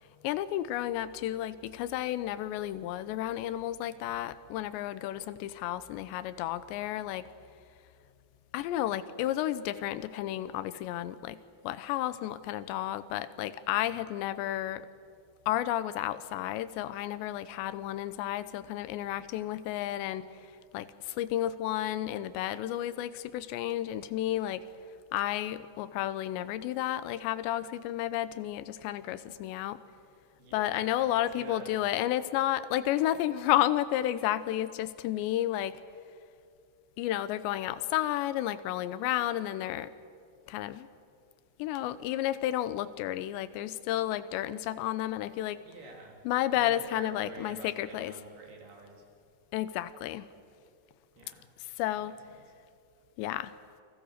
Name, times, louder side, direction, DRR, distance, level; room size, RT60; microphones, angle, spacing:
voice 1, 0.2-7.2 8.5-11.4 11.6-14.8 15.5-20.3 20.7-24.6 25.1-29.8 30.5-35.8 37.0-39.9 40.5-40.9 41.6-45.6 46.3-48.1 49.5-50.3 51.8-52.2 53.2-53.5, left 13 dB, 85° left, 14 dB, 3.0 m, -32 dB
voice 2, 30.4-31.9 45.6-46.2 46.5-49.1 51.1-51.5 51.9-52.5, right 2 dB, 65° right, 1 dB, 5.2 m, -49 dB
29.0 x 24.0 x 6.6 m, 2.3 s
omnidirectional pair, 5.0 m